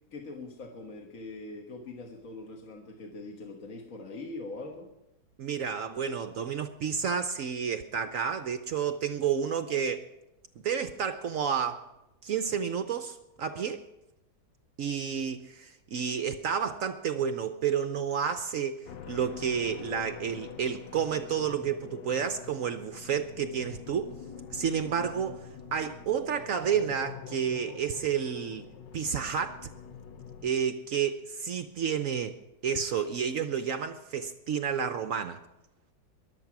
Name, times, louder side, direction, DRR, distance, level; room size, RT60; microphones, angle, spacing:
voice 1, 0.1-4.9, left 2 dB, 50° left, 1.6 m, -42 dB
voice 2, 5.4-10.1 10.6-11.8 12.2-13.8 14.8-24.1 24.5-28.7 28.9-29.7 30.4-32.4 32.6-35.4, right 7 dB, 65° right, 0.8 m, -30 dB
sound 1, 18.9-30.5, left 7 dB, 80° left, 1.6 m, -45 dB
22.0 x 8.1 x 6.0 m
omnidirectional pair, 2.0 m